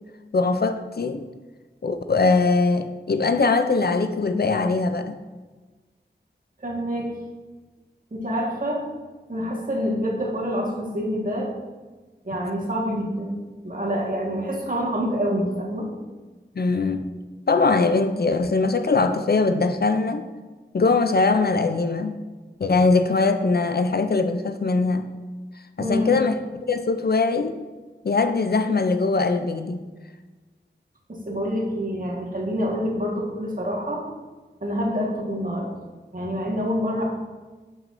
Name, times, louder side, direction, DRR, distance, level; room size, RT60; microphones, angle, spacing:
voice 1, 0.3-1.2 1.8-5.2 16.6-17.1 17.5-20.2 20.7-22.2 22.6-25.1 25.8-26.3 26.7-27.6 28.0-29.9, left 3 dB, 60° left, 9 dB, 0.4 m, -21 dB
voice 2, 6.6-7.1 8.1-8.8 9.3-11.5 12.2-15.9 25.8-26.2 31.1-34.1 34.6-35.7 36.1-37.0, equal, 50° right, -2 dB, 1.5 m, -27 dB
6.9 x 6.0 x 2.6 m, 1.3 s
wide cardioid pair, 40°, 19 cm